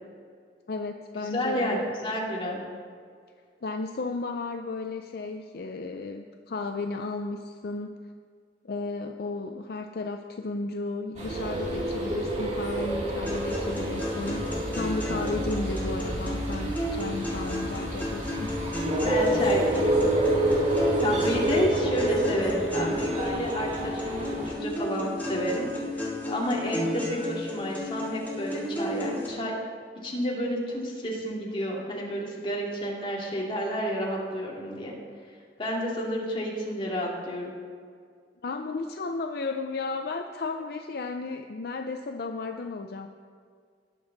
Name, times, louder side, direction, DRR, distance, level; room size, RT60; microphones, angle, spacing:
voice 1, 0.7-1.8 3.6-8.0 8.6-14.4 14.8-18.5 38.4-43.1, left 3 dB, 60° left, 5 dB, 0.5 m, -34 dB
voice 2, 1.2-2.6 19.1-20.0 21.0-25.7 26.0-29.5 30.0-34.9 35.6-37.5, equal, 30° left, -3 dB, 2.4 m, -30 dB
sound 1, 11.2-24.5, right 1 dB, 40° right, 1.9 m, -28 dB
sound 2, 13.3-29.3, left 1 dB, 10° left, 2.5 m, -33 dB
19.0 x 7.0 x 4.0 m, 2.1 s
head